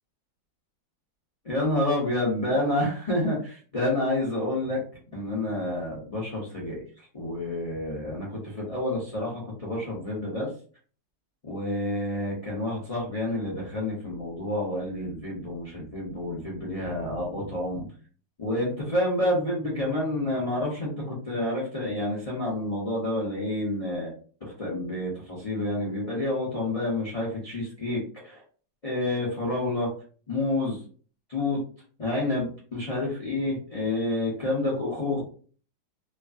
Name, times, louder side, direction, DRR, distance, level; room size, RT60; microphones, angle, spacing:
voice 1, 1.4-4.8 5.1-6.8 7.1-10.5 11.4-17.9 18.4-24.1 24.4-28.4 28.8-29.9 30.3-30.8 31.3-31.6 32.0-35.2, left 1 dB, 65° left, -5 dB, 0.3 m, -29 dB
3.2 x 2.3 x 2.5 m, 0.43 s
omnidirectional pair, 1.9 m